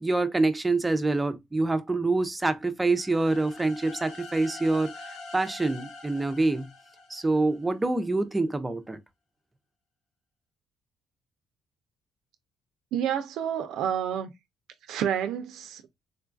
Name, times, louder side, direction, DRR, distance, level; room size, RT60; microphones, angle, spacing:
voice 1, 0.0-4.9 5.3-6.7 7.1-9.0, right 2 dB, 10° right, 0.4 m, -26 dB
sound 1, 2.9-7.7, left 3 dB, 85° left, 0.8 m, -45 dB
voice 2, 12.9-14.3 14.9-15.8, right 9 dB, 85° right, 0.4 m, -29 dB
3.8 x 2.3 x 2.4 m
cardioid pair, 155°, 0 cm